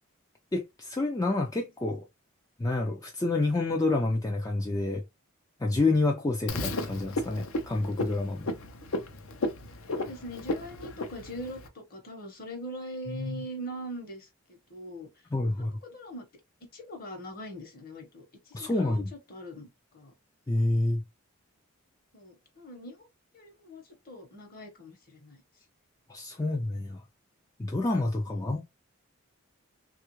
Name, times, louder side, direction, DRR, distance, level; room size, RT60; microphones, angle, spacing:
voice 1, 0.5-2.0 2.6-5.0 5.6-8.5 13.1-13.5 15.3-15.8 18.5-19.1 20.5-21.0 26.1-27.0 27.6-28.6, left 2 dB, 15° left, 0.3 m, -28 dB
Frog, 6.5-11.7, left 2 dB, 70° left, 0.6 m, -34 dB
voice 2, 10.0-15.1 15.6-16.3 16.7-19.7 19.9-20.1 22.1-23.0 23.3-25.4 28.2-28.6, equal, 45° left, 1.0 m, -42 dB
3.3 x 2.4 x 3.0 m
head